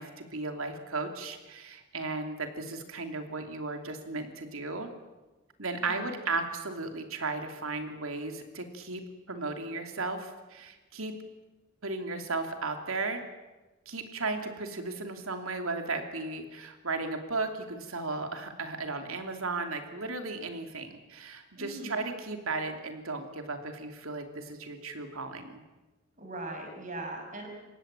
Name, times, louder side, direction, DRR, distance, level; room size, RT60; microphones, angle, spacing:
voice 1, 0.0-4.9 5.6-9.0 9.3-11.2 11.8-13.2 13.9-25.6, right 3 dB, 85° right, 6 dB, 2.9 m, -35 dB
voice 2, 5.8-6.2 21.5-22.0 26.2-27.5, right 1 dB, 35° right, 2 dB, 6.1 m, -40 dB
28.0 x 16.0 x 9.0 m, 1.2 s
head